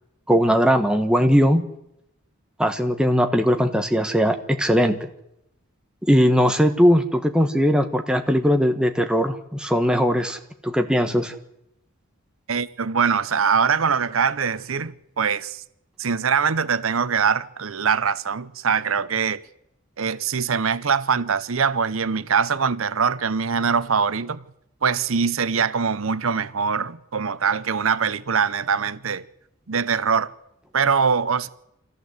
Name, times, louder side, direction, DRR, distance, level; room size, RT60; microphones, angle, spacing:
voice 1, 0.3-1.6 2.6-5.0 6.1-10.4 10.6-11.3, equal, 5° right, 1.5 m, -19 dB
voice 2, 12.5-15.6 16.0-19.4 20.0-24.4 24.8-29.2 29.7-30.3 30.7-31.5, right 6 dB, 85° right, 0.8 m, -23 dB
24.5 x 15.0 x 8.1 m
head